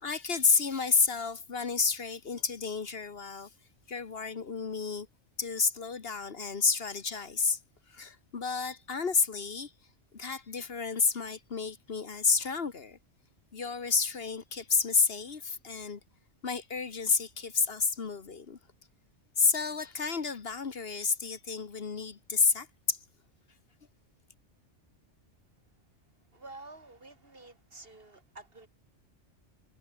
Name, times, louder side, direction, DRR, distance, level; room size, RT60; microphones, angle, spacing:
voice 1, 0.0-3.5 3.9-5.1 5.4-7.6 7.9-9.7 10.1-13.0 13.5-16.0 16.4-18.6 19.4-23.0, left 5 dB, 55° left, 1.5 m, -30 dB
voice 2, 26.3-28.7, right 2 dB, 50° right, 3.2 m, -49 dB
omnidirectional pair, 1.2 m